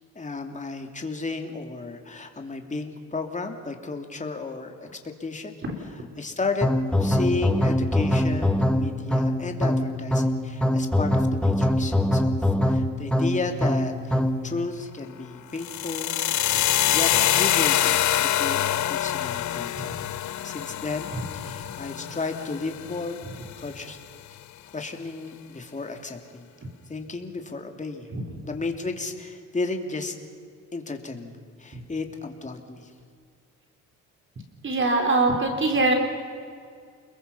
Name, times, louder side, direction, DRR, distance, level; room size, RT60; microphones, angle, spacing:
voice 1, 0.1-5.5 6.2-6.7 7.0-16.4 16.9-18.6 18.9-20.0 20.4-24.0 24.7-26.5 26.9-28.1 28.4-30.1 30.7-32.9, left 3 dB, 25° left, 4 dB, 2.9 m, -33 dB
sound 1, 6.6-14.5, left 1 dB, 5° left, 1.6 m, -23 dB
sound 2, 15.6-23.6, left 12 dB, 70° left, 0.9 m, -25 dB
voice 2, 34.6-35.9, right 2 dB, 40° right, 3 dB, 4.1 m, -23 dB
29.5 x 22.0 x 5.7 m, 2.2 s
cardioid pair, 90°, 30 cm